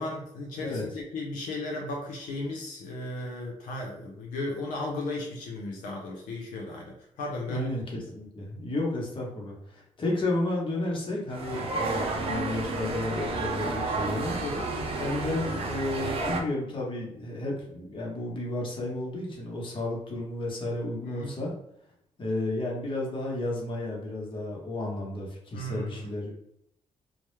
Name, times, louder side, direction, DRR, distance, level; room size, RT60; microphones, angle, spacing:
voice 1, 0.0-7.7 8.0-8.1 11.4-11.7 14.4-14.6 21.1-21.4 25.5-26.1, left 2 dB, 85° left, -1 dB, 0.5 m, -35 dB
voice 2, 7.5-7.8 8.1-14.4 15.0-21.5 22.2-26.3, left 2 dB, 40° left, -2 dB, 0.9 m, -32 dB
sound 1, 11.3-16.4, right 3 dB, 45° right, 0.5 m, -31 dB
2.2 x 2.0 x 3.0 m, 0.75 s
cardioid pair, 95°, 13 cm